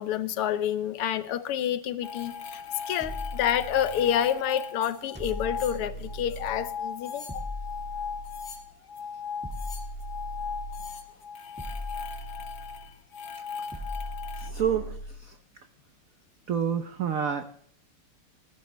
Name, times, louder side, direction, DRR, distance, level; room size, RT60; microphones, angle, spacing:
voice 1, 0.0-2.3 2.9-7.5, left 10 dB, 85° left, 1.8 m, -28 dB
sound 1, 2.0-14.5, left 6 dB, 55° left, 1.6 m, -38 dB
sound 2, 3.0-4.3 5.2-6.8 7.3-8.7 9.4-11.0 11.6-13.0 13.7-15.3, equal, 5° right, 1.0 m, -39 dB
voice 2, 14.4-15.4 16.5-17.4, right 8 dB, 75° right, 0.7 m, -29 dB
19.0 x 11.5 x 3.1 m
omnidirectional pair, 2.4 m